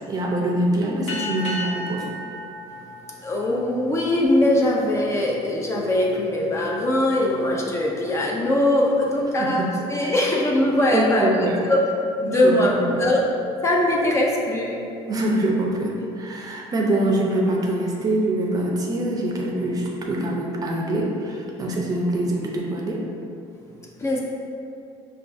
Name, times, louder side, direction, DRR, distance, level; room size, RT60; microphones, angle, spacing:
voice 1, 0.1-2.0 9.4-9.7 10.9-11.5 12.2-13.1 15.1-23.0, right 1 dB, 30° right, -1 dB, 0.5 m, -24 dB
sound 1, 1.1-4.0, left 1 dB, 60° left, 1.1 m, -33 dB
voice 2, 3.2-11.8 12.2-12.7 13.0-13.2 13.6-14.8 24.0-24.2, left 1 dB, 20° left, -2 dB, 0.4 m, -21 dB
5.8 x 2.3 x 2.5 m, 2.6 s
cardioid pair, 140°, 13 cm